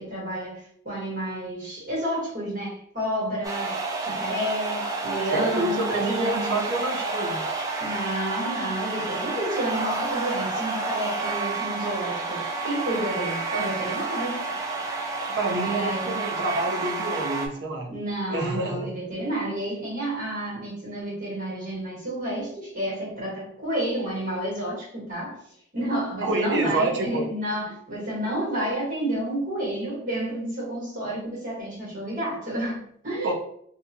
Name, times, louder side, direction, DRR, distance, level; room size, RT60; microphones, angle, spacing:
voice 1, 0.0-6.7 7.8-14.6 15.7-16.2 17.9-25.4 25.7-33.3, right 1 dB, 45° right, -6 dB, 1.4 m, -30 dB
sound 1, 3.4-17.5, right 3 dB, 20° right, 0.3 m, -30 dB
voice 2, 5.3-7.4 15.3-17.9 18.3-18.9 26.2-27.2 33.2-33.3, right 2 dB, 60° right, 1 dB, 0.6 m, -28 dB
2.6 x 2.5 x 2.6 m, 0.68 s
head